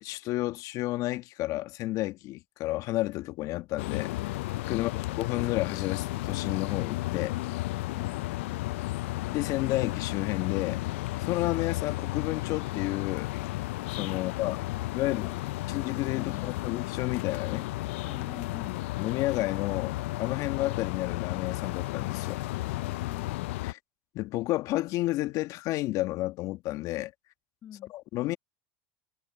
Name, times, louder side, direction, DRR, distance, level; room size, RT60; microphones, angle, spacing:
voice 1, 0.0-4.3 4.6-4.9 5.2-7.3 9.3-10.8 11.2-13.3 14.0-14.6 14.9-15.4 15.7-17.7 19.0-22.4 23.6-23.8 24.1-27.1 27.9-28.4, left 17 dB, 55° left, 1.4 m, -31 dB
sound 1, 3.8-23.7, left 19 dB, 75° left, 0.4 m, -33 dB
voice 2, 14.7-15.4 16.1-16.7 18.0-18.8 22.8-23.3 27.6-27.9, left 10 dB, 40° left, 5.4 m, -46 dB
hypercardioid pair, 90°, 7 cm